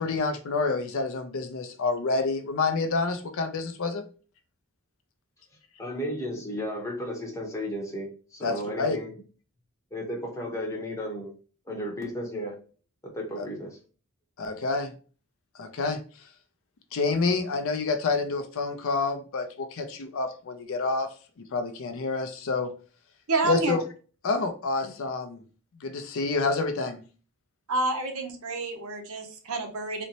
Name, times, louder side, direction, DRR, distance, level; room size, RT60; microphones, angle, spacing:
voice 1, 0.0-4.0 8.4-9.0 13.4-13.5 14.4-14.9 15.6-16.0 16.9-22.7 23.4-23.8 24.2-25.4 25.8-27.0, left 3 dB, 60° left, 0.5 m, -28 dB
voice 2, 5.8-9.2 9.9-11.3 11.7-12.6 13.0-13.8, equal, 15° left, 0.8 m, -34 dB
voice 3, 23.3-23.7 27.7-30.0, right 2 dB, 65° right, 0.8 m, -28 dB
3.9 x 2.1 x 2.8 m
head